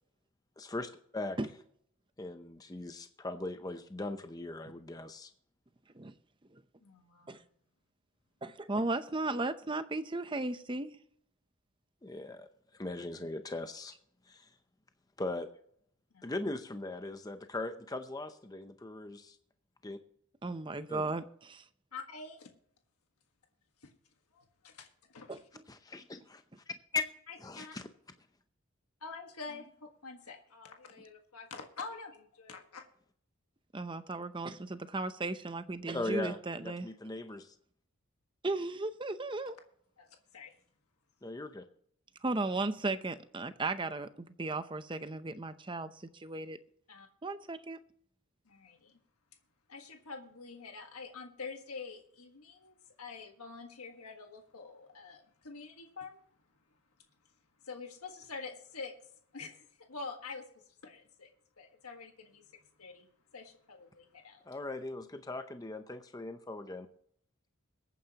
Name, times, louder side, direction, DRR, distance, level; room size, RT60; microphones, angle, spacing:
voice 1, 0.6-1.4 2.2-5.3 12.0-14.0 14.3-14.5 15.2-15.5 16.2-19.4 19.8-20.0 20.9-21.1 25.7-27.0 27.4-27.9 35.9-37.6 41.2-41.6 64.5-66.9, left 2 dB, 15° left, 0.6 m, -39 dB
voice 2, 6.8-7.4 16.1-16.2 21.9-22.5 23.8-23.9 24.3-25.5 27.3-27.7 29.0-32.9 40.0-40.5 46.9-47.1 48.4-49.0 49.7-56.2 57.6-58.9 59.3-61.3 61.6-63.1 63.3-64.4, left 4 dB, 90° left, 1.5 m, -47 dB
voice 3, 8.4-10.9 20.4-21.6 25.3-25.4 33.7-36.9 38.4-39.6 42.2-46.6 47.2-47.8, right 2 dB, 20° right, 0.7 m, -35 dB
22.5 x 9.3 x 2.9 m
head